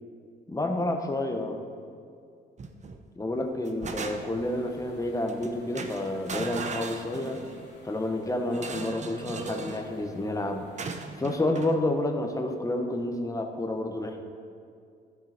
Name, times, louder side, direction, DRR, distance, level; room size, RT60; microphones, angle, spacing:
voice 1, 0.5-1.6 3.2-7.4 7.8-10.7 11.2-14.2, left 1 dB, 15° left, 4 dB, 1.1 m, -29 dB
sound 1, 2.6-3.0 3.4-4.5 5.3-5.5 5.7-7.6 8.5-9.9 10.8-11.8, right 4 dB, 35° right, 0.9 m, -37 dB
sound 2, 4.1-11.2, left 2 dB, 65° left, 2.1 m, -53 dB
12.5 x 7.6 x 4.3 m, 2.3 s
cardioid pair, 90°, 20 cm